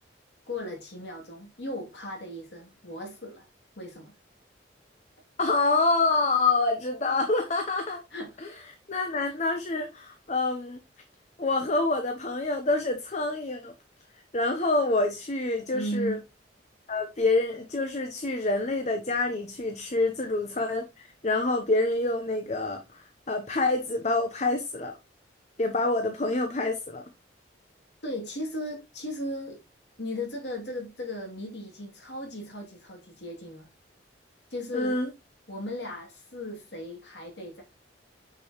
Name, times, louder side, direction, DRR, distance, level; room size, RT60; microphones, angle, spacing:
voice 1, 0.5-3.5 3.8-4.1 8.1-8.4 9.2-9.4 15.7-16.2 28.0-29.6 30.0-33.7 34.5-35.0 35.5-37.6, left 1 dB, 70° left, 2.8 m, -36 dB
voice 2, 5.4-8.0 8.4-8.5 8.9-10.8 11.4-13.7 14.3-16.2 16.9-24.9 25.6-27.0 34.7-35.1, left 2 dB, 40° left, 0.8 m, -27 dB
6.4 x 6.1 x 3.0 m
head